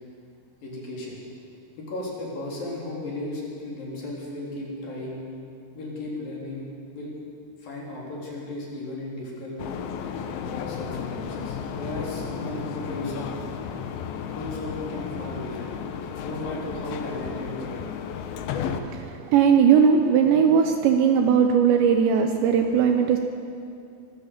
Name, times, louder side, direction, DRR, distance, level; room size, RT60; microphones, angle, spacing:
voice 1, 0.6-1.2 1.7-5.2 5.7-6.6 6.9-7.1 7.6-9.6 10.4-13.3 14.3-15.7 16.2-17.8, left 2 dB, 50° left, -3 dB, 5.1 m, -35 dB
sound 1, 9.6-18.8, left 7 dB, 80° left, 2.2 m, -33 dB
voice 2, 18.9-23.2, right 7 dB, 75° right, 6 dB, 2.8 m, -19 dB
23.5 x 15.0 x 7.4 m, 2.5 s
omnidirectional pair, 5.7 m